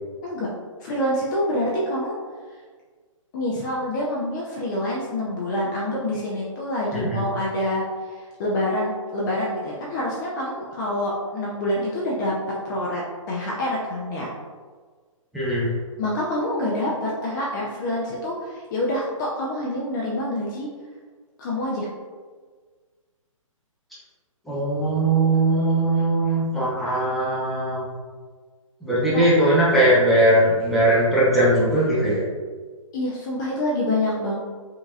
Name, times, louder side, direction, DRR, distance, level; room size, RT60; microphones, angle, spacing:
voice 1, 0.8-2.2 3.3-12.3 12.6-13.0 13.3-14.3 16.0-20.7 21.4-21.9 29.1-29.2 32.9-34.4, left 1 dB, 35° left, -5 dB, 0.7 m, -26 dB
voice 2, 6.9-7.3 15.3-15.7 24.5-27.9 28.8-32.2, right 1 dB, ahead, -10 dB, 1.1 m, -20 dB
5.3 x 2.9 x 2.5 m, 1.5 s
figure-of-eight pair, 135°, 17 cm